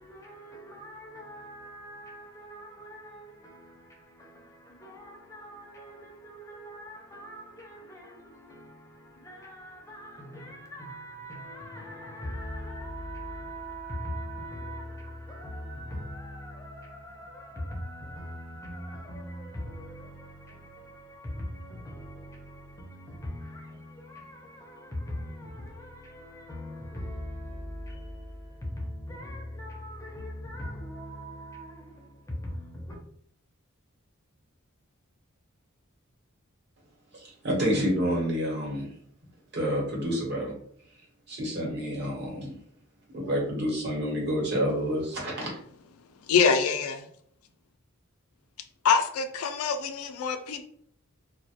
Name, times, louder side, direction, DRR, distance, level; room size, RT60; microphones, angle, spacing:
voice 1, 0.0-32.9, equal, 15° left, 0.5 m, -41 dB
voice 2, 37.1-38.9 39.5-40.5 41.3-42.5 43.1-45.6, equal, 55° right, 1.0 m, -28 dB
voice 3, 46.3-47.0 48.8-50.7, left 5 dB, 85° left, 0.3 m, -25 dB
2.3 x 2.1 x 2.7 m
head